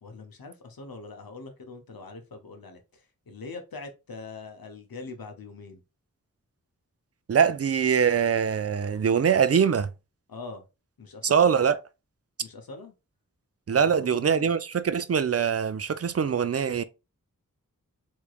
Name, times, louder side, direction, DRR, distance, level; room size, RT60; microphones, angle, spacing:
voice 1, 0.0-5.8 10.3-10.6 11.0-11.5 12.4-12.9 13.7-14.5, left 3 dB, 90° left, 0.8 m, -42 dB
voice 2, 7.3-9.9 11.2-11.8 13.7-16.8, right 7 dB, 45° right, 0.4 m, -23 dB
3.5 x 3.2 x 2.4 m
wide cardioid pair, 40°, 34 cm